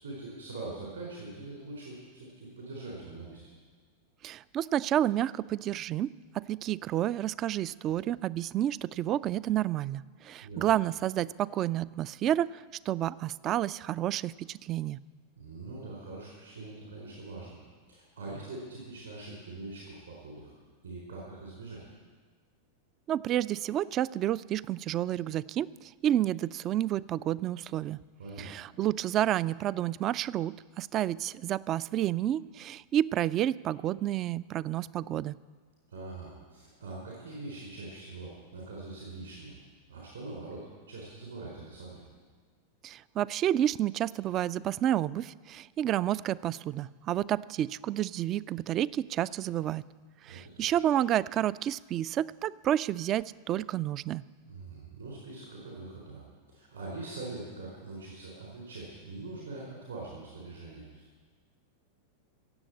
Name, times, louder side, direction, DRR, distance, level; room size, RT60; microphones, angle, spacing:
voice 1, 0.0-3.4 10.4-10.7 15.4-17.6 17.9-20.5 20.8-21.9 28.2-28.5 35.9-39.6 39.9-42.0 50.2-50.8 54.4-56.2 56.5-61.2, right 2 dB, 75° right, -4 dB, 4.0 m, -43 dB
voice 2, 4.2-15.0 23.1-28.0 28.4-35.3 42.8-49.8 50.2-54.2, right 12 dB, 35° right, 20 dB, 0.3 m, -30 dB
17.0 x 7.6 x 8.6 m, 1.5 s
figure-of-eight pair, 90°, 0 cm